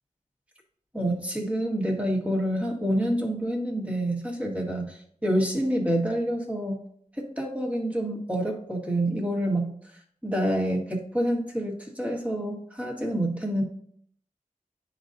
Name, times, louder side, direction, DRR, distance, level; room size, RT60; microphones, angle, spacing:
voice 1, 0.9-6.8 7.2-9.7 10.2-13.6, right 1 dB, 10° right, -1 dB, 1.7 m, -27 dB
10.0 x 4.0 x 2.7 m, 0.62 s
wide cardioid pair, 45°, 15 cm